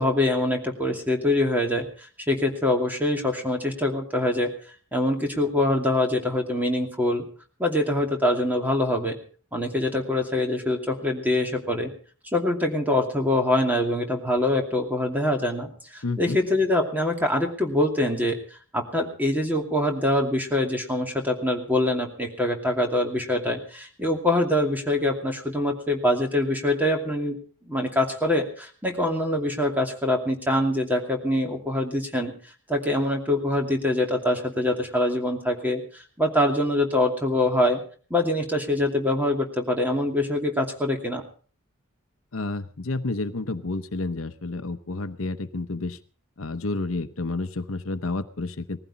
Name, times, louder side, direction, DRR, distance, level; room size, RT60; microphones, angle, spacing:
voice 1, 0.0-1.9 2.3-4.5 4.9-7.3 7.6-9.2 9.5-11.9 12.3-18.4 18.7-27.4 27.6-32.3 32.7-37.8 38.1-41.2, left 1 dB, 10° right, 2 dB, 2.6 m, -24 dB
voice 2, 16.0-16.4 42.3-46.0 46.4-48.8, left 3 dB, 75° left, 10 dB, 0.9 m, -30 dB
19.5 x 15.0 x 4.2 m, 0.42 s
head